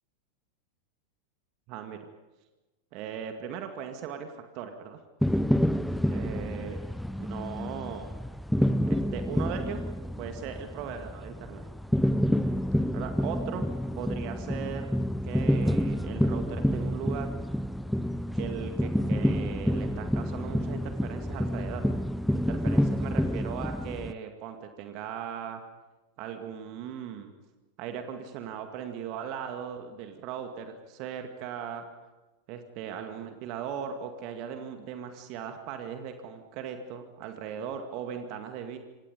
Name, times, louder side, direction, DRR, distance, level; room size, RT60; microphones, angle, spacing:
voice 1, 1.7-2.0 2.9-5.0 6.1-6.8 7.2-8.1 8.9-9.8 10.2-11.7 12.9-13.7 13.9-14.9 15.2-17.3 18.3-21.8 22.4-25.6 26.2-27.3 27.8-31.9 32.5-38.8, right 8 dB, 40° right, 6 dB, 2.2 m, -38 dB
sound 1, 5.2-24.1, equal, ahead, 0.7 m, -28 dB
28.0 x 25.5 x 5.4 m, 1.1 s
figure-of-eight pair, 90°, 0 cm